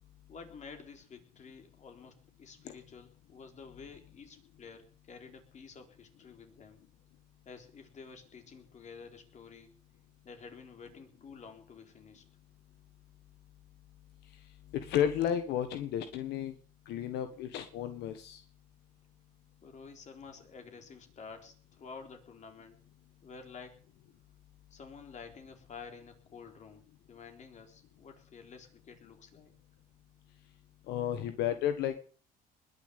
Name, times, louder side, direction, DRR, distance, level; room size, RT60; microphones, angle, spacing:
voice 1, 0.3-6.8 7.4-9.7 10.2-12.2 19.6-22.8 23.2-23.8 24.7-29.5, left 5 dB, 45° left, 5 dB, 4.2 m, -50 dB
voice 2, 14.7-16.5 16.8-18.4 30.9-32.0, left 10 dB, 85° left, 9 dB, 1.5 m, -32 dB
21.0 x 7.0 x 8.4 m, 0.42 s
cardioid pair, 110°, 17 cm